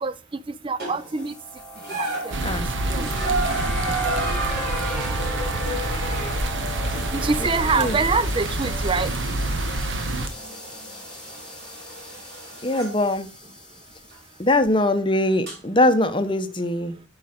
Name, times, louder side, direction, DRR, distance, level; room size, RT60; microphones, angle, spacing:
voice 1, 0.6-1.4 1.9-2.3 2.9-3.1 7.1-9.1, right 4 dB, 25° right, 0.5 m, -25 dB
sound 1, 0.8-1.3 1.8-13.0 14.1-14.2 15.5-15.6, right 2 dB, 50° right, 6.1 m, -33 dB
sound 2, 1.0-14.4, equal, 5° left, 1.5 m, -38 dB
sound 3, 2.3-10.3, right 2 dB, 65° right, 1.2 m, -27 dB
voice 2, 2.4-2.7 7.8-8.0 12.6-13.3 14.4-17.0, left 1 dB, 25° left, 0.8 m, -21 dB
10.0 x 4.9 x 5.0 m
head